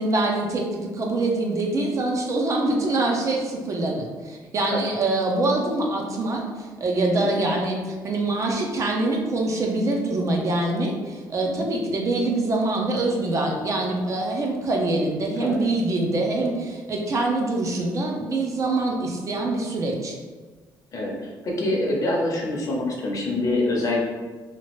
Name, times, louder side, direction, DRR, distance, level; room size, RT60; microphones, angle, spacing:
voice 1, 0.0-20.2, right 2 dB, 40° right, 0 dB, 0.5 m, -24 dB
voice 2, 20.9-24.1, left 2 dB, 45° left, -2 dB, 0.7 m, -25 dB
2.9 x 2.4 x 3.0 m, 1.3 s
cardioid pair, 115°, 8 cm